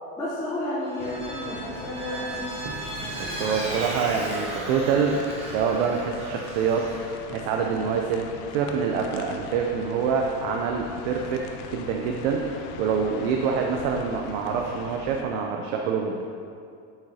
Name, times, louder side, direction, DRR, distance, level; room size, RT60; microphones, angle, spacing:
voice 1, 0.2-2.5, left 1 dB, 10° left, -9 dB, 0.9 m, -31 dB
Vehicle, 0.8-7.2, right 1 dB, 15° right, 1.0 m, -36 dB
Rain and Wind Inside tent on campsite Patagonia El Chalten, 1.0-15.2, left 7 dB, 60° left, 0.6 m, -42 dB
Thunder, 2.4-6.6, right 3 dB, 35° right, 0.9 m, -42 dB
voice 2, 3.2-16.2, right 6 dB, 65° right, 2 dB, 0.7 m, -26 dB
8.0 x 7.2 x 2.8 m, 2.5 s
cardioid pair, 165°, 40 cm